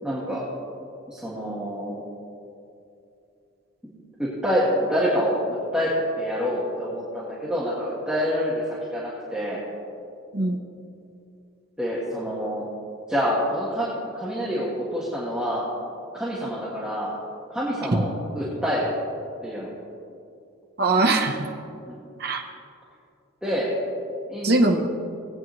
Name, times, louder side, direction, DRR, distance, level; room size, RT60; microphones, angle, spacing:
voice 1, 0.0-0.5 1.1-2.0 4.2-8.6 8.9-9.6 11.8-12.7 13.1-15.6 16.1-17.1 17.5-18.9 19.4-19.7 21.9-22.0 23.4-23.7 24.3-24.6, equal, 5° right, -8 dB, 1.5 m, -27 dB
voice 2, 20.8-21.4 22.2-22.4 24.4-24.9, right 2 dB, 50° right, 1 dB, 0.8 m, -21 dB
18.5 x 8.5 x 3.1 m, 2.6 s
head